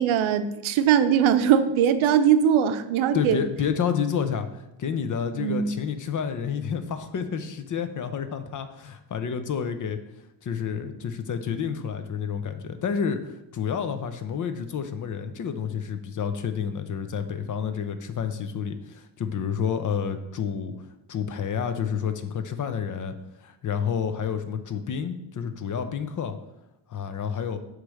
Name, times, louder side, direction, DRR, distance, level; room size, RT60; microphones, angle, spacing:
voice 1, 0.0-3.4 5.4-5.7, right 9 dB, 85° right, 11 dB, 0.7 m, -21 dB
voice 2, 3.1-10.0 10.4-20.7 21.1-23.1 23.4-26.4 26.9-27.6, left 7 dB, 40° left, 9 dB, 0.6 m, -29 dB
8.1 x 3.3 x 6.2 m, 0.89 s
cardioid pair, 165°, 46 cm